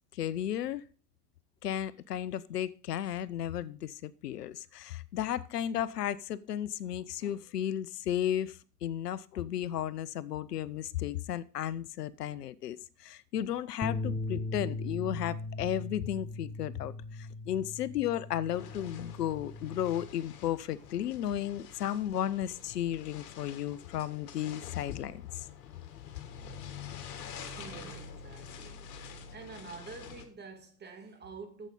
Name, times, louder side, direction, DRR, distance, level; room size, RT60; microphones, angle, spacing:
voice 1, 0.1-0.8 1.6-25.5, left 11 dB, 80° left, 0.6 m, -34 dB
sound 1, 13.8-20.1, left 2 dB, 10° left, 1.2 m, -39 dB
sound 2, 18.5-30.2, left 7 dB, 65° left, 1.7 m, -47 dB
voice 2, 27.4-28.9 29.3-31.7, right 4 dB, 20° right, 2.3 m, -47 dB
8.9 x 7.4 x 5.2 m
figure-of-eight pair, 85°, 47 cm